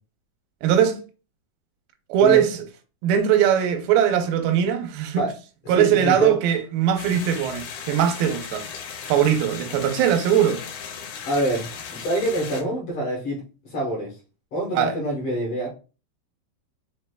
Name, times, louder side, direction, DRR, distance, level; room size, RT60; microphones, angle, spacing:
voice 1, 0.6-1.0 2.1-2.6 3.0-5.3 5.7-8.7 9.1-10.6 14.7-14.9, right 9 dB, 80° right, 2.4 m, -20 dB
voice 2, 5.7-6.3 11.3-14.1 14.5-15.7, right 1 dB, 60° left, 1.6 m, -26 dB
sound 1, 7.0-12.6, left 7 dB, 85° left, 2.6 m, -37 dB
6.0 x 2.8 x 2.2 m
omnidirectional pair, 4.2 m